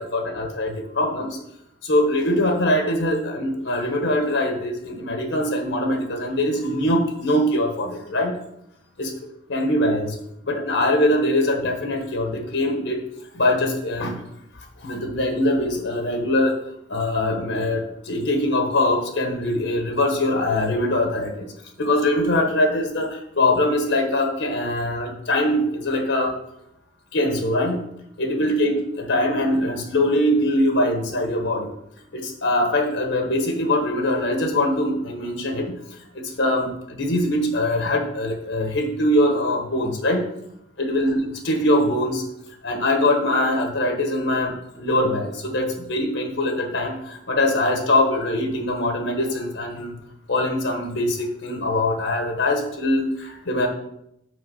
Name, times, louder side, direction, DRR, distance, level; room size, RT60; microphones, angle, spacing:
voice 1, 0.0-1.4 1.8-8.3 9.0-9.1 9.5-10.1 10.5-13.0 13.3-14.2 14.8-16.6 16.9-21.5 21.8-26.4 27.1-27.9 28.2-31.7 32.1-35.7 36.1-40.2 40.8-42.2 42.6-49.9 50.3-53.7, left 1 dB, 60° left, 3 dB, 1.2 m, -22 dB
6.4 x 4.9 x 6.2 m, 0.80 s
head